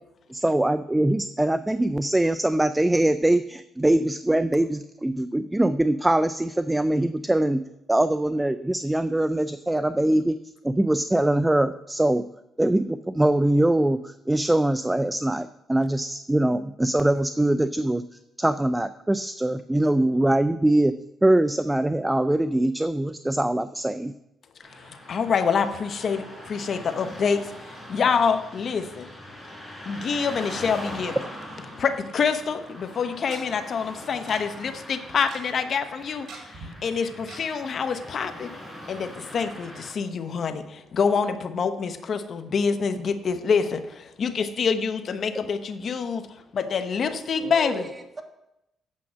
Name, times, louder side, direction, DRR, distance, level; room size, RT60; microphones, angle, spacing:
voice 1, 0.3-7.6 7.9-10.4 10.6-12.2 12.6-18.0 18.4-20.9 21.2-24.1, right 1 dB, 10° right, 12 dB, 0.4 m, -22 dB
voice 2, 24.6-29.1 29.8-31.2 31.8-38.5 38.9-47.9, left 6 dB, 55° left, 9 dB, 0.8 m, -26 dB
Car passing by / Traffic noise roadway noise, 24.6-39.9, left 1 dB, 10° left, 4.7 m, -42 dB
Tick-tock, 32.4-32.5 33.3-33.4 34.3-34.4 34.7-34.8 35.0-35.4 36.3-36.7 37.3-37.4 37.8-37.9 38.2-38.3, right 4 dB, 55° right, 2.9 m, -42 dB
voice 3, 47.0-48.2, right 3 dB, 30° right, 5 dB, 1.5 m, -39 dB
8.5 x 7.2 x 6.2 m, 0.88 s
cardioid pair, 90°, 0 cm